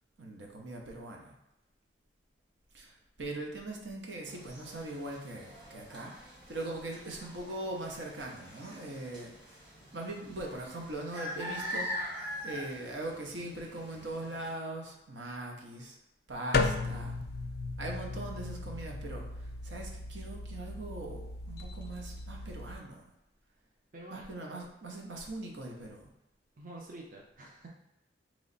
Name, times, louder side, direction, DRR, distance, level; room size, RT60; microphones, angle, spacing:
voice 1, 0.2-1.4 2.7-9.3 9.9-11.9 12.4-16.0 16.3-17.2 17.8-19.2 19.6-23.1 24.1-26.1, right 2 dB, 85° right, 0 dB, 0.8 m, -41 dB
sound 1, 4.3-14.5, equal, 25° right, 1.2 m, -43 dB
sound 2, 16.5-22.7, left 3 dB, 55° left, 0.3 m, -35 dB
voice 2, 23.9-24.3 26.6-27.7, right 2 dB, 45° right, -2 dB, 0.6 m, -48 dB
3.1 x 3.1 x 4.0 m, 0.89 s
head